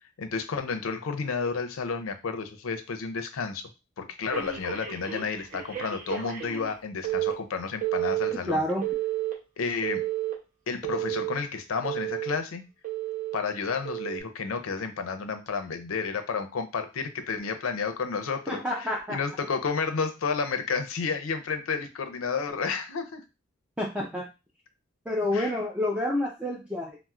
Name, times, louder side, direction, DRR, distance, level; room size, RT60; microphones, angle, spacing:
voice 1, 0.2-3.7 4.0-8.6 9.6-10.0 10.7-12.6 13.3-23.2 25.3-25.5, left 5 dB, 80° left, 8 dB, 0.5 m, -31 dB
Telephone, 4.3-6.8 7.0-7.3 7.8-8.3 8.8-9.3 9.8-10.3 10.8-11.3 11.8-12.3 12.8-13.4 13.8-14.2, right 14 dB, 40° right, 0.8 m, -31 dB
voice 2, 8.5-8.9 18.5-19.2 23.8-24.3 25.1-27.0, left 1 dB, 5° right, -2 dB, 0.4 m, -28 dB
4.2 x 2.0 x 2.4 m, 0.28 s
head